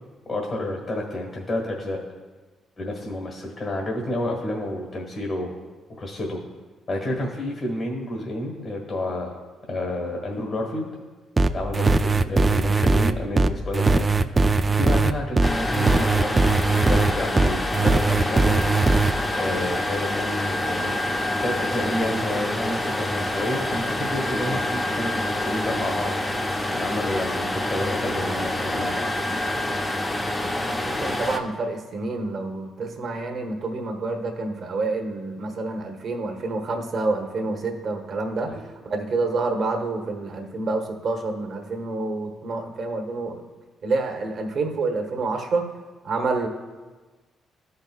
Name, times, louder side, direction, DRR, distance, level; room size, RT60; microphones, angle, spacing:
voice 1, 0.3-2.0 2.8-5.5 6.0-6.4 6.9-9.4 9.7-10.9 11.5-14.1 14.7-18.7 19.3-20.9 21.4-26.2 26.7-29.1 38.5-38.6, left 1 dB, 45° left, -1 dB, 1.7 m, -30 dB
sound 1, 11.4-19.1, right 3 dB, 25° right, 0.3 m, -19 dB
sound 2, 15.4-31.4, left 1 dB, 15° left, 0.7 m, -27 dB
voice 2, 30.7-43.4 43.8-45.6 46.0-46.5, right 3 dB, 55° right, 3 dB, 1.1 m, -28 dB
13.0 x 5.4 x 2.4 m, 1.3 s
cardioid pair, 90°, 0 cm